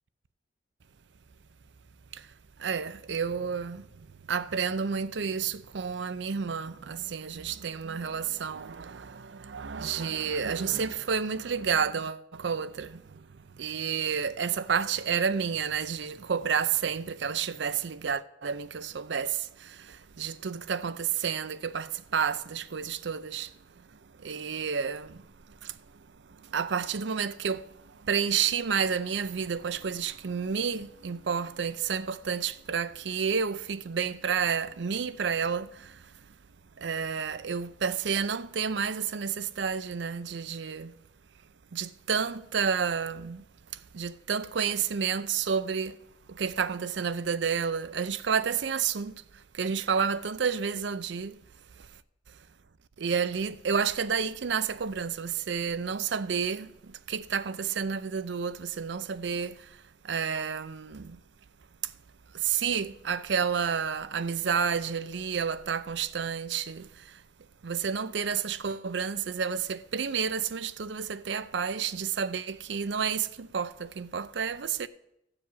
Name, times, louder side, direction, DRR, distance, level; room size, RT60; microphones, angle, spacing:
voice 1, 2.6-3.9 4.3-23.5 23.9-36.1 36.8-40.9 41.7-43.5 43.7-46.0 46.3-51.4 51.8-51.9 53.0-61.2 61.8-61.9 62.3-67.2 67.6-74.9, right 6 dB, 70° right, 0.5 m, -30 dB
14.0 x 4.9 x 8.3 m
head